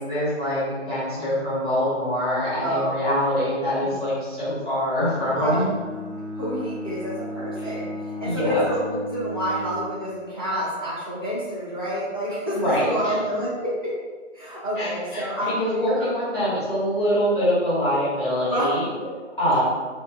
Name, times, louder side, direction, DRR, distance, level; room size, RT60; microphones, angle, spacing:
voice 1, 0.0-5.6 7.6-7.7 8.2-8.6 12.5-13.1 14.8-18.9 19.4-19.6, equal, 40° left, -10 dB, 1.5 m, -24 dB
voice 2, 1.1-1.4 2.5-2.9 3.8-3.9 5.3-5.6 6.3-13.9 14.3-16.1 16.4-16.6 18.4-18.7 19.0-19.1, equal, 20° left, -10 dB, 0.4 m, -28 dB
Bowed string instrument, 5.0-9.9, left 1 dB, 35° right, 0.6 m, -34 dB
2.5 x 2.4 x 2.4 m, 1.4 s
figure-of-eight pair, 140°, 37 cm